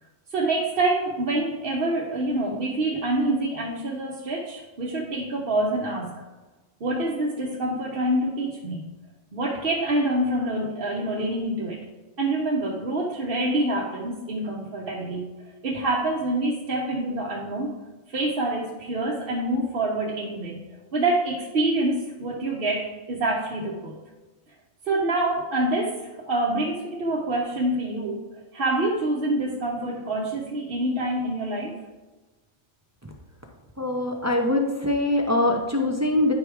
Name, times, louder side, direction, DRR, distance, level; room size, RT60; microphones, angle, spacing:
voice 1, 0.3-6.2 6.8-8.8 9.3-11.8 12.2-15.3 15.6-17.7 18.1-20.6 20.9-23.9 24.8-28.2 28.5-31.7, right 2 dB, 50° right, -3 dB, 1.0 m, -26 dB
voice 2, 33.8-36.3, left 1 dB, 20° right, 1 dB, 0.4 m, -23 dB
9.6 x 3.5 x 4.7 m, 1.2 s
omnidirectional pair, 1.3 m